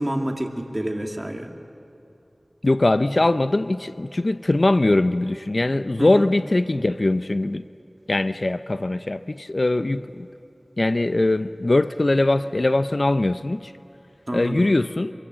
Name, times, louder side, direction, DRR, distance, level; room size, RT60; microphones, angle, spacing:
voice 1, 0.0-1.5 6.0-6.3 14.3-14.7, right 1 dB, 30° right, 3 dB, 2.2 m, -28 dB
voice 2, 2.6-7.6 8.1-10.3 10.8-13.7 14.3-15.1, left 2 dB, 55° left, 13 dB, 0.5 m, -21 dB
24.5 x 24.0 x 7.4 m, 2.7 s
wide cardioid pair, 45°, 0 cm